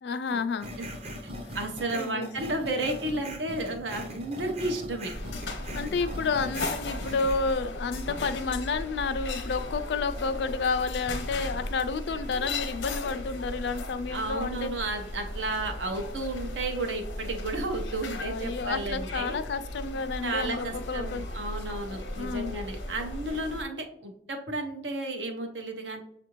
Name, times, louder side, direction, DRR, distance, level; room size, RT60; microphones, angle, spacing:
voice 1, 0.0-0.7 1.9-2.3 5.7-14.7 18.2-21.2 22.2-22.5, left 4 dB, 70° left, 11 dB, 0.3 m, -30 dB
sound 1, 0.6-7.5, equal, 35° right, 0.6 m, -40 dB
voice 2, 1.5-5.1 14.1-19.4 20.2-26.0, right 2 dB, 85° right, 4 dB, 0.8 m, -33 dB
sound 2, 5.1-23.6, left 2 dB, 90° left, 0.7 m, -36 dB
6.7 x 2.5 x 3.0 m, 0.73 s
head